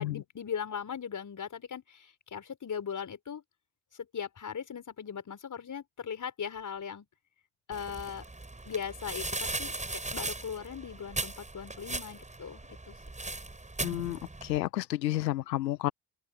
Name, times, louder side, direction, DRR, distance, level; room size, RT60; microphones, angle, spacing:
voice 1, 0.0-3.4 3.9-7.1 7.7-8.2 8.7-9.7 10.1-13.0, left 7 dB, 35° left, 5.6 m, -39 dB
sound 1, 7.7-14.6, right 2 dB, 15° right, 7.6 m, -38 dB
voice 2, 13.8-15.9, left 15 dB, 75° left, 1.0 m, -31 dB
open air
figure-of-eight pair, 50°, 50 cm